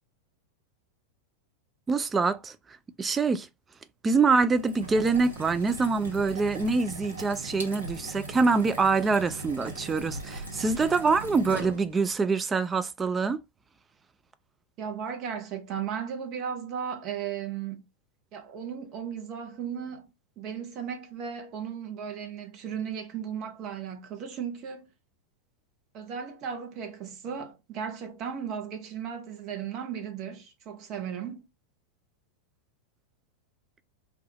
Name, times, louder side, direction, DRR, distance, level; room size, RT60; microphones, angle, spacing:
voice 1, 1.9-2.6 3.0-3.5 4.0-13.4, right 4 dB, 15° right, 0.3 m, -25 dB
sound 1, 4.5-12.1, right 1 dB, 75° right, 1.0 m, -40 dB
voice 2, 14.8-17.9 18.3-20.1 20.4-24.9 25.9-31.5, right 7 dB, 35° right, 0.7 m, -36 dB
2.4 x 2.3 x 3.8 m
figure-of-eight pair, 90°, 0 cm